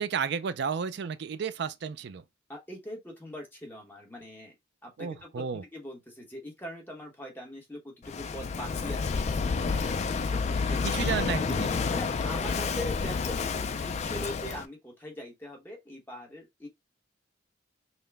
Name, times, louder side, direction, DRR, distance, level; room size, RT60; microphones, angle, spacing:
voice 1, 0.0-2.2 5.0-5.6 10.8-11.7, right 6 dB, 60° right, 0.4 m, -32 dB
voice 2, 2.5-4.5 4.8-9.4 9.8-10.8 11.9-16.7, equal, 10° left, 1.0 m, -42 dB
Walk footsteps / Wind / Waves surf, 8.0-14.7, left 4 dB, 35° left, 0.3 m, -30 dB
5.6 x 2.1 x 3.3 m
head